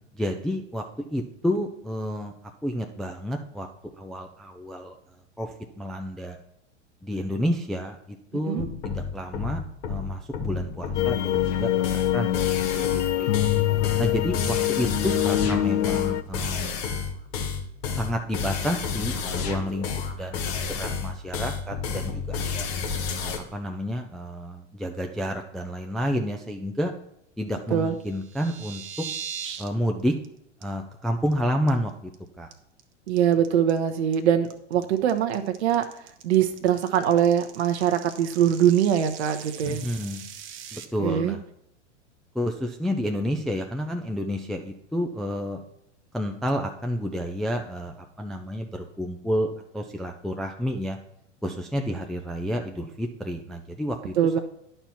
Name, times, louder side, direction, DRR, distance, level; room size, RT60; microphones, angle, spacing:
voice 1, 0.1-0.8 1.1-2.3 2.6-3.7 4.0-4.9 5.4-6.4 7.0-8.0 8.3-13.3 14.0-16.8 17.9-19.9 20.2-22.7 23.2-26.9 27.4-28.8 29.6-30.1 30.6-31.9 32.4-32.5 39.6-40.2 40.7-41.4 42.3-45.6 46.1-51.0 51.4-54.4, equal, ahead, 2 dB, 0.4 m, -30 dB
sound 1, 8.6-23.4, left 5 dB, 50° left, 1.5 m, -30 dB
sound 2, 10.9-16.2, left 13 dB, 75° left, 0.5 m, -24 dB
sound 3, 28.0-29.7 30.0-30.3 30.6-30.7 31.1-31.3 31.7-32.1 32.5-40.8, right 8 dB, 35° right, 0.9 m, -40 dB
voice 2, 33.1-35.8 36.2-39.8 41.0-41.4 54.2-54.4, right 9 dB, 65° right, 7 dB, 0.9 m, -22 dB
10.0 x 4.5 x 5.7 m, 0.75 s
hypercardioid pair, 100°, 36 cm